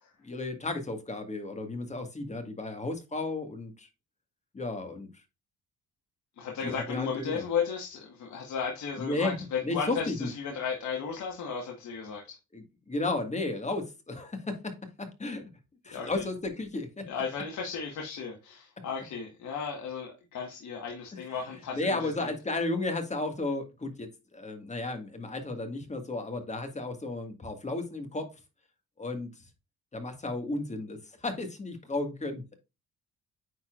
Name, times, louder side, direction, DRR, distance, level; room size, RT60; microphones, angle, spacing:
voice 1, 0.2-3.9 4.5-5.1 6.6-7.1 7.3-7.4 9.0-10.3 12.5-15.4 15.8-17.1 21.7-28.3 29.0-29.3 29.9-32.5, left 2 dB, 25° left, 1.9 m, -33 dB
voice 2, 6.4-12.4 15.9-16.2 17.1-22.3, left 6 dB, 70° left, 1.6 m, -35 dB
9.4 x 4.3 x 2.5 m
cardioid pair, 90°, 30 cm